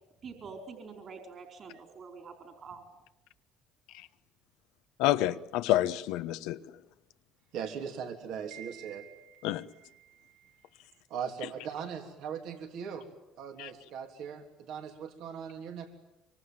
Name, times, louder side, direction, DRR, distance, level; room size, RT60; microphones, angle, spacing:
voice 1, 0.2-2.8, right 5 dB, 45° right, 4.5 m, -46 dB
voice 2, 5.0-6.6 9.4-9.6 13.6-13.7, left 14 dB, 80° left, 1.1 m, -28 dB
voice 3, 7.5-10.7 11.1-13.1 13.4-15.9, right 7 dB, 70° right, 3.4 m, -40 dB
25.0 x 24.0 x 9.3 m
supercardioid pair, 90°, 0 cm